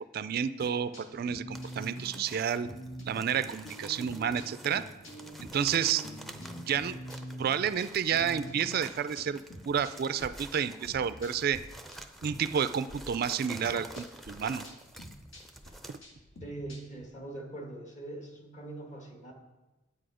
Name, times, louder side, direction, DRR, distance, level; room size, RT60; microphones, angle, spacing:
voice 1, 0.0-2.7 3.0-4.8 5.4-6.0 6.6-7.0 7.4-9.4 9.7-11.6 12.2-14.7 15.9-16.0, right 8 dB, 50° right, 13 dB, 0.3 m, -30 dB
sound 1, 0.6-11.6 11.9-13.0 13.3-17.0, equal, 70° left, 2.2 m, -46 dB
sound 2, 1.5-16.0, right 1 dB, ahead, 0.5 m, -49 dB
voice 2, 16.4-19.3, right 2 dB, 35° left, 1 dB, 1.7 m, -42 dB
10.0 x 8.3 x 4.9 m, 1.1 s
head